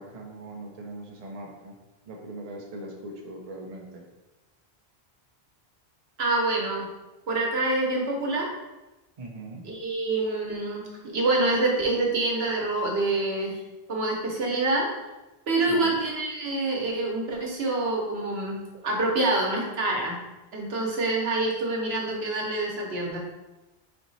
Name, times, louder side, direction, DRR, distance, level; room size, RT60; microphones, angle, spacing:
voice 1, 0.0-1.8 2.1-4.1 9.2-9.6 15.7-15.9, right 1 dB, 40° right, 0 dB, 0.7 m, -40 dB
voice 2, 6.2-6.9 7.3-8.5 9.6-13.6 13.9-14.9 15.5-20.2 20.5-23.2, right 2 dB, 75° right, -1 dB, 1.2 m, -26 dB
4.3 x 2.8 x 4.0 m, 1.1 s
omnidirectional pair, 1.1 m